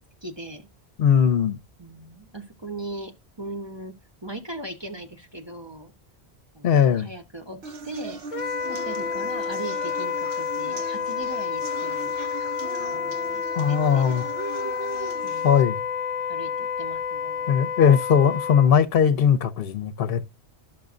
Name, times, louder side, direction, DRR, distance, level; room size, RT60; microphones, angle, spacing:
voice 1, 0.2-0.7 1.8-3.9 4.2-5.9 6.5-8.2 8.7-12.1 12.8-14.2 15.2-15.6 16.3-17.6, right 1 dB, 25° right, 1.1 m, -39 dB
voice 2, 1.0-1.6 6.6-7.1 13.5-14.3 15.4-15.8 17.5-20.2, left 7 dB, 65° left, 0.9 m, -19 dB
sound 1, 7.6-15.6, right 3 dB, 75° right, 1.1 m, -38 dB
Wind instrument woodwind instrument, 8.3-18.7, left 6 dB, 45° left, 0.5 m, -29 dB
12.0 x 6.1 x 2.5 m
omnidirectional pair, 1.1 m